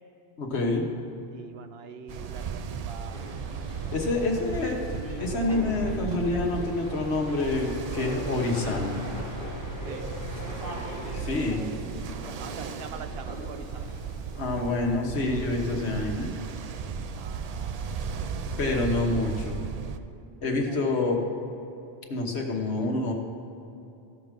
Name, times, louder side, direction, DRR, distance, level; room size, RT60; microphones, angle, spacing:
voice 1, 0.4-0.9 3.9-4.8 5.2-9.0 11.1-11.7 14.4-16.3 18.6-19.6 20.4-21.2 22.1-23.1, left 2 dB, 65° left, 0 dB, 1.6 m, -27 dB
voice 2, 1.3-3.2 9.8-10.2 10.5-10.9 12.3-13.9 17.1-18.3 20.7-20.8, right 6 dB, 60° right, 9 dB, 0.8 m, -44 dB
Ocean, 2.1-20.0, right 6 dB, 85° right, 0.3 m, -36 dB
sound 1, 3.1-14.7, equal, 35° right, 2.4 m, -41 dB
sound 2, 6.1-11.2, left 4 dB, 20° left, 0.5 m, -41 dB
15.0 x 6.1 x 5.2 m, 2.8 s
omnidirectional pair, 1.2 m